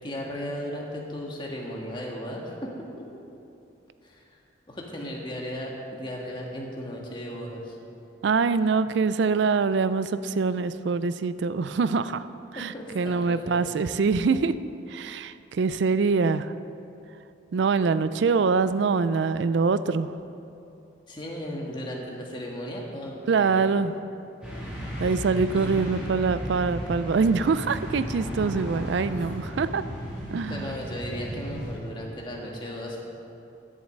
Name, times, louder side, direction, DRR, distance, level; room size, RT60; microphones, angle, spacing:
voice 1, 0.0-2.7 3.0-3.1 4.0-4.4 4.7-7.8 12.5-13.6 21.1-23.7 25.0-25.2 25.5-25.9 30.5-33.0, equal, 25° left, -2 dB, 1.6 m, -36 dB
voice 2, 8.2-12.3 12.5-14.5 14.9-16.5 17.5-20.1 23.3-23.9 25.0-29.8 30.3-30.7, right 4 dB, 65° right, 14 dB, 0.4 m, -24 dB
sound 1, 24.4-31.8, equal, 5° right, 2.6 m, -35 dB
11.0 x 7.2 x 7.7 m, 2.8 s
head